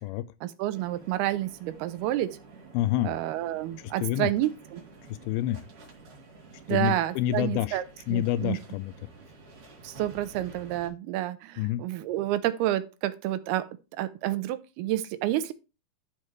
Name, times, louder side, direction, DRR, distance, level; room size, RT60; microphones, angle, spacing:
voice 1, 0.4-2.4 3.0-4.8 6.7-7.8 8.1-8.6 9.8-13.7 14.0-15.5, right 14 dB, 85° right, 2.7 m, -29 dB
sound 1, 0.7-10.9, right 3 dB, 55° right, 4.1 m, -50 dB
voice 2, 2.7-3.1 4.0-4.3 5.3-5.6 6.7-7.8 8.1-8.9 11.6-11.8, left 14 dB, 85° left, 2.3 m, -27 dB
14.0 x 4.8 x 3.2 m
omnidirectional pair, 4.4 m